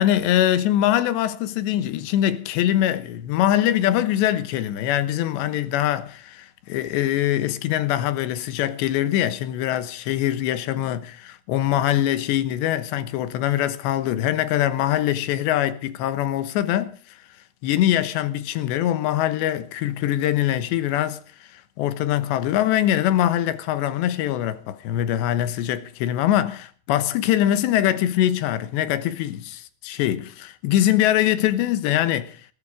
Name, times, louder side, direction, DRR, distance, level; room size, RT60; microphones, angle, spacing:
voice 1, 0.0-17.2 17.6-32.4, left 12 dB, 80° left, 3.4 m, -23 dB
19.0 x 14.0 x 4.9 m
omnidirectional pair, 5.0 m